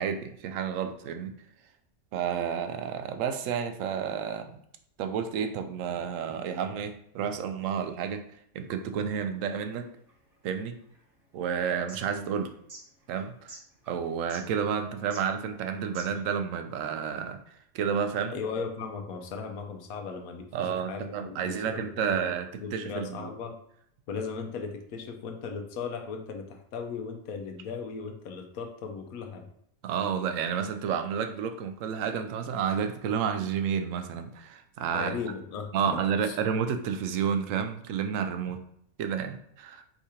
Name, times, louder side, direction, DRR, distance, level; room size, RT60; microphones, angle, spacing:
voice 1, 0.0-1.4 2.1-4.5 5.0-8.2 8.5-9.9 10.4-10.8 11.3-12.5 13.1-13.5 13.9-17.4 17.7-18.3 20.5-23.3 29.8-35.2 35.7-38.6 39.0-39.8, right 7 dB, 70° right, 8 dB, 0.9 m, -30 dB
sound 1, 9.4-16.4, right 2 dB, 45° right, 1.3 m, -51 dB
voice 2, 18.3-22.3 22.6-23.6 24.1-29.5 34.9-36.4, left 5 dB, 80° left, 4 dB, 1.1 m, -37 dB
4.8 x 3.7 x 2.8 m, 0.70 s
omnidirectional pair, 1.5 m